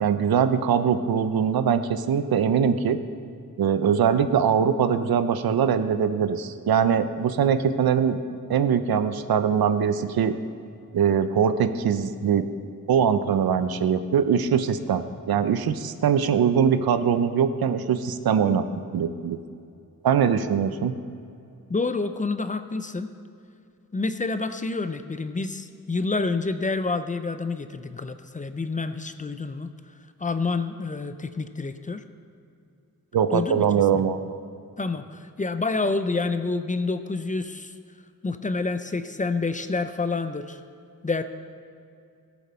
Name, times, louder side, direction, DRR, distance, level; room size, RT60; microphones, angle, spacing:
voice 1, 0.0-3.0 3.6-8.2 8.5-10.3 10.9-12.4 12.9-18.7 18.9-19.4 20.0-21.0 33.1-34.4, right 7 dB, 90° right, 10 dB, 0.7 m, -22 dB
voice 2, 21.7-23.1 23.9-29.7 30.2-32.0 33.3-33.7 33.9-34.1 34.8-37.8 38.2-40.6 41.0-41.2, left 3 dB, 20° left, 9 dB, 0.4 m, -28 dB
17.0 x 7.2 x 4.3 m, 2.5 s
wide cardioid pair, 125°, 35 cm